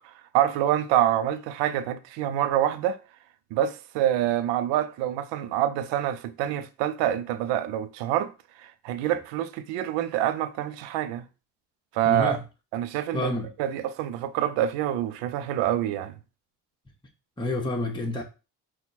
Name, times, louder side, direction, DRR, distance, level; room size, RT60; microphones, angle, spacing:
voice 1, 0.3-3.0 3.5-8.3 8.6-11.2 11.9-12.4 12.7-13.3 13.6-16.1, right 11 dB, 80° right, 0.6 m, -26 dB
voice 2, 12.1-12.4 13.1-13.5 17.4-18.2, left 2 dB, 10° left, 1.0 m, -28 dB
4.3 x 2.3 x 4.1 m
hypercardioid pair, 40°, 42 cm